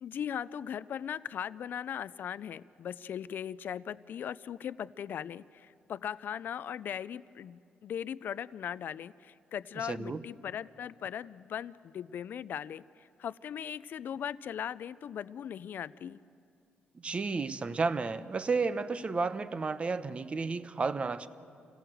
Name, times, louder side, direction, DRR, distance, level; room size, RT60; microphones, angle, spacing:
voice 1, 0.0-16.2, left 9 dB, 60° left, 0.5 m, -39 dB
voice 2, 9.8-10.2 17.0-21.3, right 4 dB, 35° right, 0.9 m, -32 dB
27.0 x 17.0 x 7.8 m
cardioid pair, 95°, 4 cm